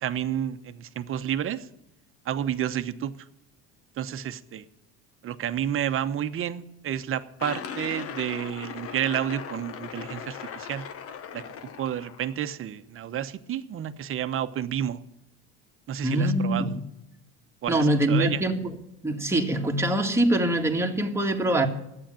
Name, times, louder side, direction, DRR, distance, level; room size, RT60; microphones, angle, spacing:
voice 1, 0.0-1.7 2.2-3.1 4.0-4.6 5.2-10.8 11.3-11.4 11.8-15.0 15.9-16.7 17.6-18.4, right 10 dB, 40° right, 1.0 m, -30 dB
sound 1, 7.4-12.4, left 7 dB, 45° left, 1.1 m, -38 dB
voice 2, 16.0-16.8 17.7-18.7 19.0-21.7, right 1 dB, 10° right, 1.8 m, -24 dB
11.5 x 8.8 x 8.9 m
supercardioid pair, 110°, 32 cm